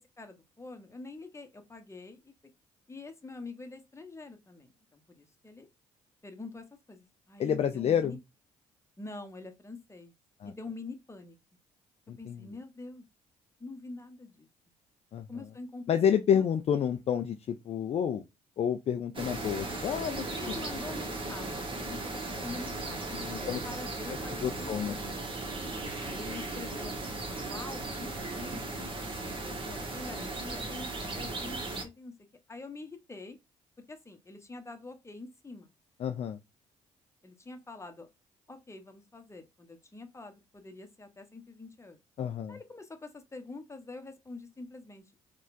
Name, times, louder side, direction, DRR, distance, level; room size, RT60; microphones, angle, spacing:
voice 1, 0.2-2.3 2.9-5.7 6.2-8.2 9.0-10.1 10.4-11.4 12.2-13.0 13.6-14.5 15.3-16.0 16.3-16.4 20.3-25.4 26.0-28.8 29.4-32.1 32.5-33.4 33.9-35.7 37.2-38.1 38.5-42.0 42.5-45.0, left 3 dB, 15° left, 0.9 m, -45 dB
voice 2, 7.4-8.2 10.4-10.5 12.1-12.4 15.1-15.3 15.9-18.2 18.6-20.2 23.1-23.6 24.1-24.9 36.0-36.4 42.2-42.6, left 8 dB, 40° left, 0.3 m, -29 dB
sound 1, 19.1-31.8, right 2 dB, 30° right, 1.1 m, -37 dB
4.1 x 2.3 x 2.5 m
hypercardioid pair, 45°, 17 cm